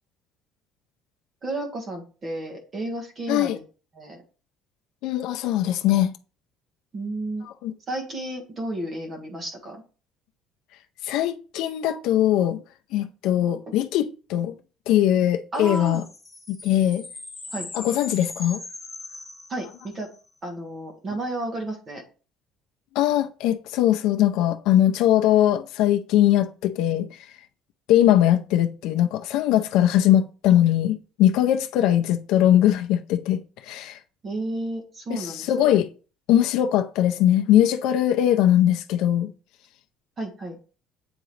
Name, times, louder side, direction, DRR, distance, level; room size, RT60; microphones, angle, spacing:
voice 1, 1.4-3.6 3.9-4.2 6.9-7.5 7.9-9.8 15.5-16.1 17.5-17.7 19.5-20.1 20.4-22.0 34.2-35.8 40.2-40.6, right 1 dB, 25° right, 1.5 m, -32 dB
voice 2, 5.0-6.1 7.6-7.7 11.0-12.6 12.9-14.5 14.9-16.0 16.5-17.1 17.7-18.6 23.0-27.1 27.9-34.0 35.1-35.9 36.3-39.3, left 12 dB, 70° left, 0.5 m, -21 dB
sound 1, 15.5-20.2, left 2 dB, 5° right, 1.7 m, -40 dB
7.9 x 3.7 x 3.2 m
cardioid pair, 170°, 0 cm